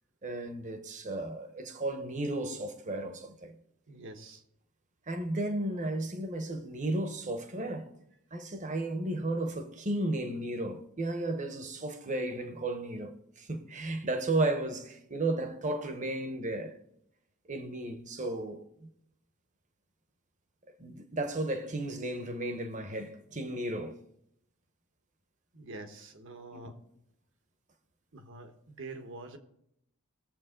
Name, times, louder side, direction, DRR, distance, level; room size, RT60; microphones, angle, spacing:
voice 1, 0.2-3.6 5.1-7.9 8.3-16.8 17.5-18.9 20.7-24.0 26.5-26.7, right 2 dB, 35° right, 1.1 m, -34 dB
voice 2, 3.9-4.4 25.5-26.8 28.1-29.4, right 2 dB, 60° right, 1.3 m, -46 dB
19.5 x 7.5 x 3.8 m
head